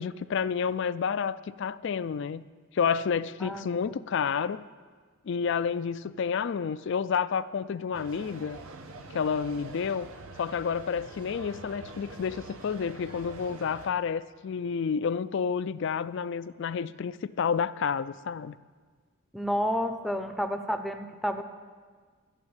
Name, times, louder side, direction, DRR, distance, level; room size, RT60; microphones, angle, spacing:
voice 1, 0.0-2.5 2.7-4.6 5.3-8.6 9.1-10.1 10.4-18.6, left 6 dB, 55° left, 16 dB, 0.3 m, -30 dB
voice 2, 3.4-3.9 19.3-21.4, equal, ahead, 7 dB, 0.6 m, -30 dB
sound 1, 7.9-13.9, right 2 dB, 75° right, 1.0 m, -45 dB
13.0 x 7.3 x 8.8 m, 1.5 s
head